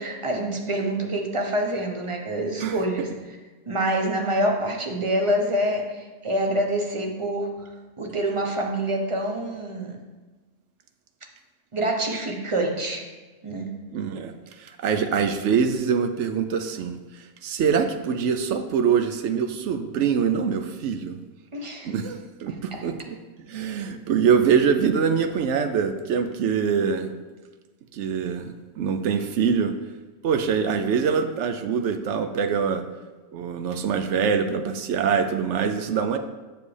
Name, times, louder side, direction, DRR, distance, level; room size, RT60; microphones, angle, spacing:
voice 1, 0.0-3.1 3.7-7.5 8.0-10.0 11.7-13.1 13.4-13.7 21.5-21.9, right 1 dB, 30° right, 2 dB, 0.8 m, -26 dB
voice 2, 13.9-14.3 14.6-21.2 21.8-23.2 23.5-27.1 27.9-29.7 30.2-32.8 33.3-36.2, right 6 dB, 70° right, 8 dB, 0.9 m, -24 dB
7.3 x 6.8 x 3.3 m, 1.3 s
omnidirectional pair, 1.3 m